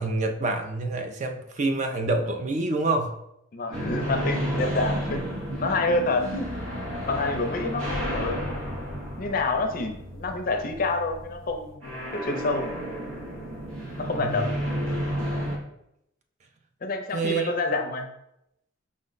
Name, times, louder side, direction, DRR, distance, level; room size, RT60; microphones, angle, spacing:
voice 1, 0.0-3.1 14.0-14.4 17.1-17.5, right 2 dB, 35° right, 5 dB, 0.4 m, -27 dB
voice 2, 3.5-6.5 7.1-8.5 9.2-12.7 14.0-14.5 16.8-18.1, left 3 dB, 45° left, 5 dB, 0.5 m, -28 dB
sound 1, 3.7-15.6, equal, 85° right, 0.9 m, -32 dB
5.0 x 2.1 x 3.9 m, 0.81 s
head